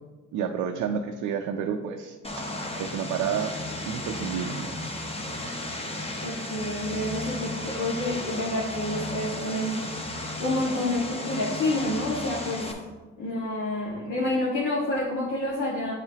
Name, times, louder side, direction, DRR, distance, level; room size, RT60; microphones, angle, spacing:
voice 1, 0.3-2.2 2.8-3.5 3.9-4.8, right 7 dB, 90° right, 3 dB, 0.6 m, -30 dB
Vehicle, 2.2-12.7, left 1 dB, 20° left, 1.0 m, -34 dB
voice 2, 6.0-9.9 10.4-12.8 13.2-15.9, left 1 dB, 75° left, -6 dB, 1.5 m, -28 dB
8.5 x 4.9 x 2.8 m, 1.3 s
cardioid pair, 90°, 30 cm